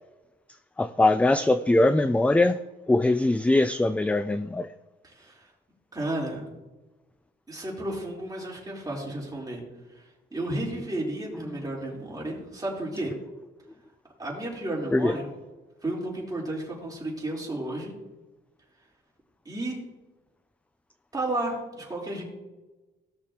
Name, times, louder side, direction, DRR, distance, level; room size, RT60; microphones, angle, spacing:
voice 1, 0.8-2.6 2.9-4.7 14.9-15.1, left 2 dB, 5° left, 0.3 m, -22 dB
voice 2, 5.0-5.5 5.9-6.5 7.5-9.6 9.9-13.1 14.2-15.3 15.8-17.9 19.5-19.8 21.1-22.2, right 1 dB, 20° right, 3.8 m, -32 dB
17.5 x 6.6 x 2.9 m
cardioid pair, 90°, 20 cm